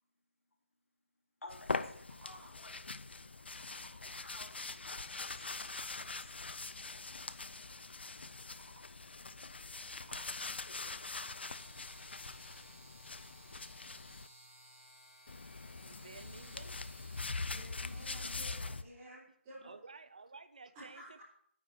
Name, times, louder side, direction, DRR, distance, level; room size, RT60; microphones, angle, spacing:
voice 1, 1.4-2.8 4.0-5.9 6.2-6.5, left 2 dB, 80° left, 1 dB, 3.1 m, -54 dB
sound 1, 1.5-14.3 15.3-18.8, left 3 dB, 50° left, 0.6 m, -43 dB
sound 2, 2.0-2.8 3.1-4.3 8.2-9.1 9.6-10.7, right 2 dB, 75° right, 3.4 m, -62 dB
electric shaver, 11.1-18.7, equal, 10° left, 5.5 m, -59 dB
voice 2, 15.8-16.8 19.6-21.2, right 4 dB, 35° right, 11 dB, 0.7 m, -53 dB
voice 3, 17.4-19.7 20.7-21.2, equal, 10° right, -10 dB, 3.5 m, -53 dB
9.7 x 7.9 x 7.7 m, 0.68 s
figure-of-eight pair, 180°, 7 cm